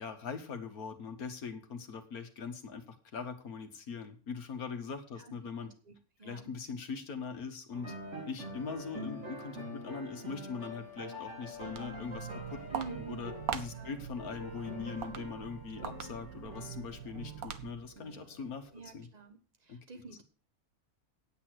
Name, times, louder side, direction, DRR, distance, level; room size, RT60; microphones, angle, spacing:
voice 1, 0.0-5.7 6.2-7.9 8.2-19.1 19.7-19.9, left 5 dB, 75° left, 7 dB, 1.9 m, -41 dB
voice 2, 5.2-6.5 12.7-13.2 13.7-14.0 15.8-15.9 18.7-20.2, right 4 dB, 30° right, 6 dB, 1.5 m, -48 dB
sound 1, 7.7-19.0, equal, 50° right, 4.5 m, -46 dB
Walk footsteps, 11.4-18.0, right 8 dB, 75° right, 1.4 m, -42 dB
9.4 x 8.4 x 6.1 m, 0.37 s
omnidirectional pair, 1.6 m